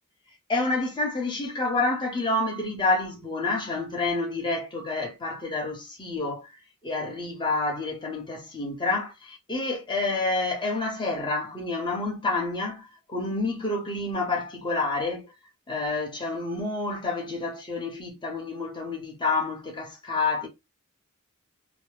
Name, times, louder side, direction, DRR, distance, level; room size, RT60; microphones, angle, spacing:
voice 1, 0.5-6.5 6.8-15.3 15.7-20.5, left 3 dB, 20° left, 1.0 m, -28 dB
3.1 x 2.1 x 3.2 m
head